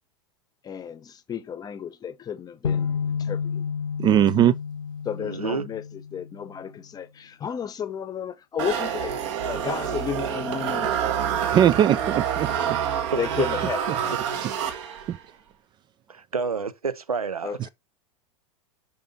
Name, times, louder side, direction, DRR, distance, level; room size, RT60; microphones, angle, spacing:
voice 1, 0.6-3.6 5.0-9.1 9.4-11.2 13.2-14.2 17.4-17.7, left 8 dB, 20° left, 0.8 m, -33 dB
sound 1, 2.6-6.7, left 6 dB, 75° left, 0.7 m, -30 dB
voice 2, 4.0-4.5 11.5-12.8 15.1-15.2, right 10 dB, 25° right, 0.4 m, -20 dB
voice 3, 5.2-5.7 12.8-13.5 16.1-17.6, right 5 dB, 80° right, 0.7 m, -29 dB
sound 2, 8.6-15.2, right 9 dB, 55° right, 1.6 m, -27 dB
5.7 x 5.1 x 5.2 m
figure-of-eight pair, 90°, 18 cm